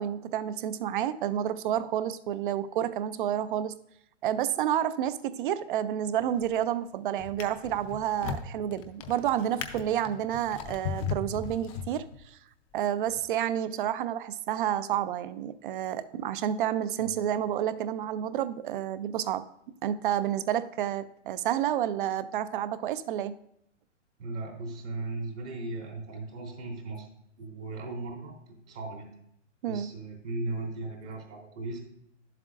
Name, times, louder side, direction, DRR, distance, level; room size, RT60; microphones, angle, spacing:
voice 1, 0.0-3.7 4.2-12.4 12.7-19.4 19.8-23.4 29.6-29.9, right 10 dB, 45° right, 15 dB, 0.4 m, -30 dB
Drawer open or close, 6.2-6.6 7.2-12.4 13.1-13.2, left 6 dB, 30° left, 0.5 m, -38 dB
voice 2, 24.2-27.1 27.4-28.3 28.7-29.2 29.7-31.8, right 2 dB, 75° right, -2 dB, 3.3 m, -37 dB
10.5 x 7.5 x 2.5 m, 0.73 s
hypercardioid pair, 140°, 36 cm